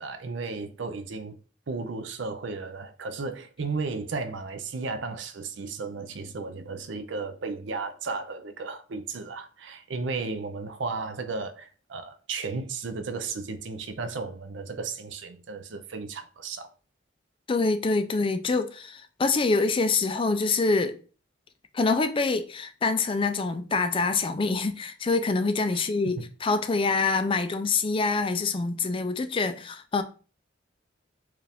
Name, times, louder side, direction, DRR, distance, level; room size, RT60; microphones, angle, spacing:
voice 1, 0.0-1.4 1.7-16.7 25.7-26.3, right 4 dB, 70° right, 0.5 m, -34 dB
voice 2, 17.5-21.0 21.7-30.0, left 3 dB, 30° left, 0.4 m, -25 dB
4.6 x 2.5 x 3.4 m
head